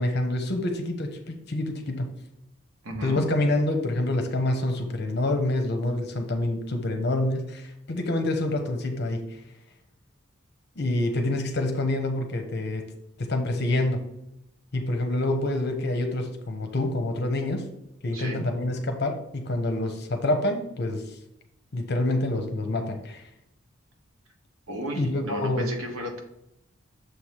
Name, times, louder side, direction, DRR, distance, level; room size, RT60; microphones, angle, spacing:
voice 1, 0.0-2.1 3.0-9.2 10.8-12.9 13.2-14.1 14.7-17.7 18.0-21.2 21.7-23.2 24.9-25.7, left 1 dB, 50° left, 5 dB, 0.8 m, -27 dB
voice 2, 2.8-3.2 18.1-18.4 24.7-26.2, right 1 dB, 80° right, 2 dB, 1.3 m, -33 dB
6.7 x 3.2 x 5.6 m, 0.82 s
head